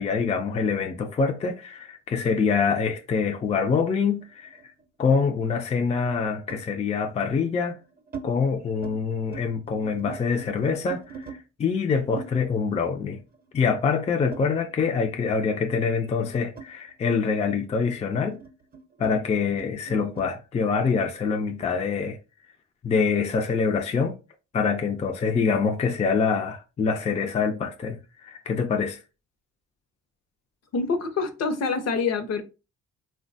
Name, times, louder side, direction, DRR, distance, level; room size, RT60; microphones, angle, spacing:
voice 1, 0.0-4.6 5.0-7.8 8.2-13.2 13.5-18.4 19.0-22.2 22.8-24.1 24.5-28.0 28.2-29.0, left 5 dB, 20° left, 0.4 m, -25 dB
sound 1, 4.1-5.2 6.5-6.7 7.5-8.3 8.6-9.0 9.2-11.4 12.2-15.0 15.3-20.3, right 5 dB, 30° right, 0.6 m, -44 dB
voice 2, 30.7-32.4, left 4 dB, 55° left, 0.7 m, -26 dB
3.2 x 2.2 x 2.6 m
cardioid pair, 90°, 30 cm